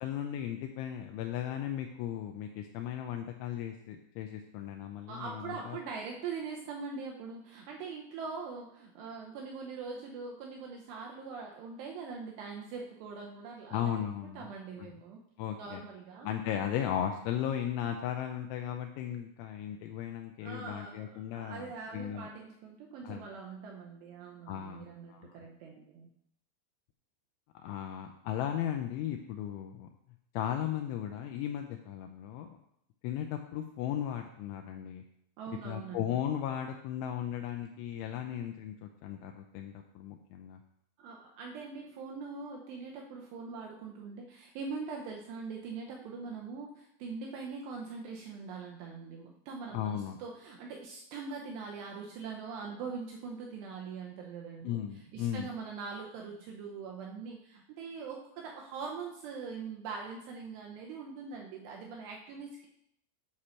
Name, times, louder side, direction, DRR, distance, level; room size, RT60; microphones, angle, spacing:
voice 1, 0.0-5.8 13.7-14.5 14.8-14.9 15.4-15.8 16.2-22.3 23.0-23.3 24.5-25.4 27.6-29.9 30.3-32.6 33.0-35.0 35.6-40.6 49.7-50.2 54.6-55.5, left 10 dB, 85° left, 4 dB, 2.8 m, -36 dB
voice 2, 5.1-13.9 14.4-15.2 15.6-16.3 16.7-16.8 20.4-26.1 35.4-36.2 41.0-54.8 55.1-62.7, right 5 dB, 80° right, 0 dB, 2.4 m, -42 dB
9.8 x 6.3 x 4.3 m, 0.77 s
omnidirectional pair, 5.9 m